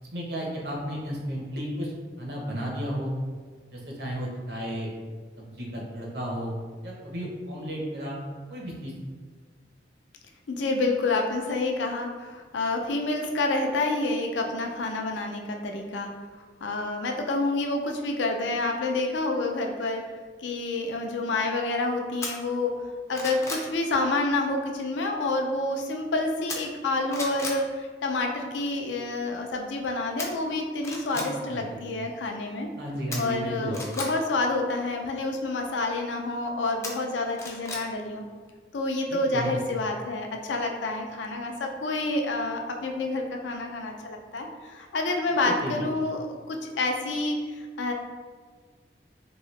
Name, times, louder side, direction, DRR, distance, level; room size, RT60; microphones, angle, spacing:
voice 1, 0.0-1.9 2.2-3.1 3.7-4.9 5.4-6.6 6.8-8.2 8.5-8.9 31.5-31.8 32.8-33.8 39.1-39.6 45.4-45.8, equal, 65° right, -2 dB, 0.8 m, -33 dB
voice 2, 10.5-16.1 16.6-20.0 20.4-22.7 23.1-32.7 33.2-38.2 38.7-47.9, left 2 dB, 90° left, 2 dB, 0.5 m, -28 dB
sound 1, 22.2-22.3 22.8-23.7 26.5-26.8 27.1-27.6 30.2-30.3 30.8-31.3 33.1-34.1 36.8-37.8 38.2-38.3, left 2 dB, 15° left, 0.3 m, -34 dB
3.0 x 2.7 x 3.1 m, 1.5 s
head